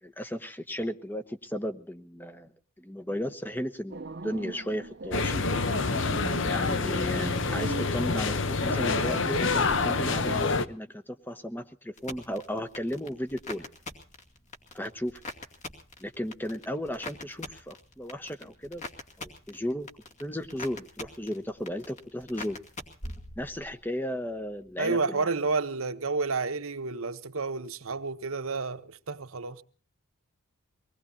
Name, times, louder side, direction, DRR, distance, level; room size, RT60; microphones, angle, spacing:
voice 1, 0.0-2.5 2.8-5.4 6.5-13.7 14.7-15.2 16.0-18.8 19.2-19.9 20.2-22.6 23.4-25.3, equal, 10° left, 1.0 m, -35 dB
sound 1, 3.9-10.4, right 3 dB, 50° right, 0.8 m, -40 dB
sound 2, 5.1-10.6, left 4 dB, 55° left, 0.9 m, -27 dB
sound 3, 12.0-23.9 24.2-24.7, left 2 dB, 35° left, 2.4 m, -44 dB
voice 2, 24.8-29.6, right 4 dB, 75° right, 1.1 m, -30 dB
25.0 x 19.5 x 2.8 m
head